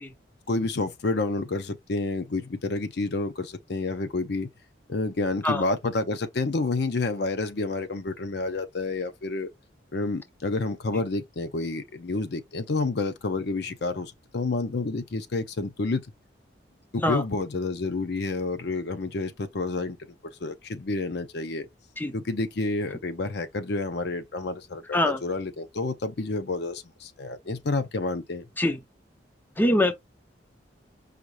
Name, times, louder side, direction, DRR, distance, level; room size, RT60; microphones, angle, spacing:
voice 1, 0.5-4.5 4.9-9.5 9.9-16.1 16.9-20.0 20.4-21.7 22.1-28.5, left 3 dB, 60° left, 0.6 m, -29 dB
voice 2, 29.6-29.9, left 1 dB, 10° left, 0.5 m, -23 dB
5.0 x 2.4 x 3.2 m
head